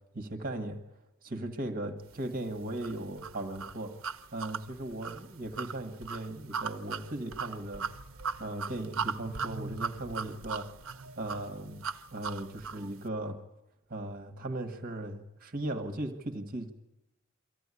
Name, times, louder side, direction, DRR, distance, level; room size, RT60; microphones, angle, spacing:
voice 1, 0.1-0.8 1.2-4.0 4.3-7.8 8.4-10.7 11.2-11.8 12.1-13.4 13.9-16.7, right 1 dB, 45° right, 5 dB, 1.7 m, -37 dB
sound 1, 2.8-12.9, right 5 dB, 80° right, 1.0 m, -38 dB
24.0 x 15.0 x 9.8 m, 0.92 s
head